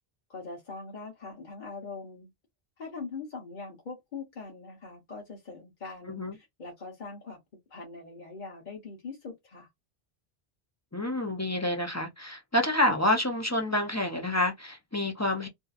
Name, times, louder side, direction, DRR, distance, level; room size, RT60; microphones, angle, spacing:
voice 1, 0.3-2.3 2.8-7.4 7.7-9.7, left 4 dB, 50° left, 1.0 m, -42 dB
voice 2, 10.9-15.5, left 1 dB, 20° left, 0.4 m, -28 dB
2.6 x 2.4 x 2.4 m
omnidirectional pair, 1.0 m